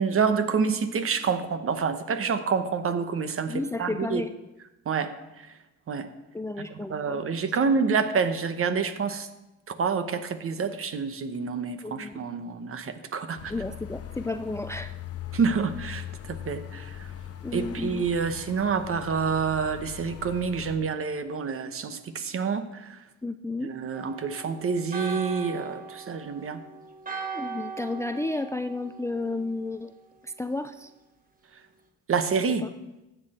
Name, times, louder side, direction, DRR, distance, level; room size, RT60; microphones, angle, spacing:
voice 1, 0.0-4.2 4.9-5.1 5.9-6.1 6.7-9.3 9.7-13.5 15.3-17.1 17.5-23.0 23.6-26.6 32.1-32.6, right 5 dB, 45° right, 9 dB, 1.0 m, -28 dB
voice 2, 3.5-4.3 6.3-7.2 11.8-12.2 13.5-14.9 17.4-18.0 23.2-23.7 27.3-29.9 30.2-30.9 32.5-32.7, left 2 dB, 10° left, 9 dB, 0.4 m, -32 dB
sound 1, 13.4-20.8, left 11 dB, 50° left, 0.8 m, -40 dB
Church bell, 23.9-29.6, right 5 dB, 30° right, 1.2 m, -39 dB
13.5 x 7.8 x 4.3 m, 0.98 s
cardioid pair, 90°, 30 cm